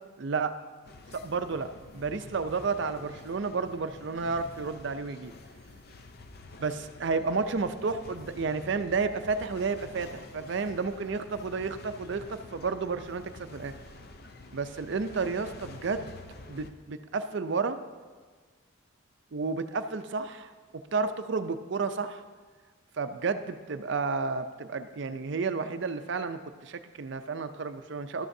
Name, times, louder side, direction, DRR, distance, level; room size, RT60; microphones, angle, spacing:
voice 1, 0.2-0.5 1.1-1.7 1.9-5.3 6.6-13.7 14.5-16.1 16.5-17.8 19.3-22.2 23.0-28.3, right 4 dB, 55° right, 10 dB, 0.5 m, -31 dB
sound 1, 0.8-16.7, left 3 dB, 45° left, 0.6 m, -48 dB
12.5 x 12.0 x 2.7 m, 1.5 s
head